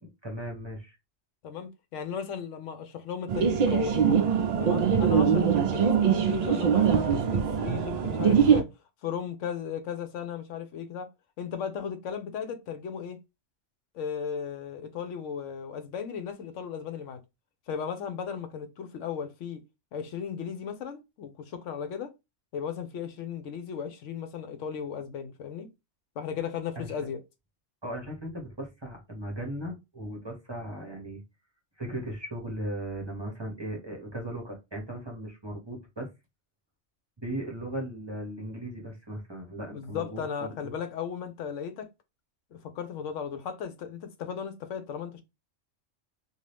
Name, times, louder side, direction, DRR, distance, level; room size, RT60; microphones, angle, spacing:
voice 1, 0.0-1.0 26.7-26.9 27.8-31.2 31.8-36.1 37.2-40.8, right 1 dB, 25° right, 0.7 m, -37 dB
voice 2, 1.4-4.0 4.6-8.6 9.0-11.1 11.4-13.2 13.9-17.2 17.7-19.6 19.9-22.1 22.5-25.7 26.2-27.2 39.7-41.9 42.7-45.2, left 7 dB, 85° left, 1.0 m, -36 dB
sound 1, 3.3-8.6, right 7 dB, 75° right, 0.3 m, -23 dB
2.7 x 2.4 x 3.2 m
omnidirectional pair, 1.2 m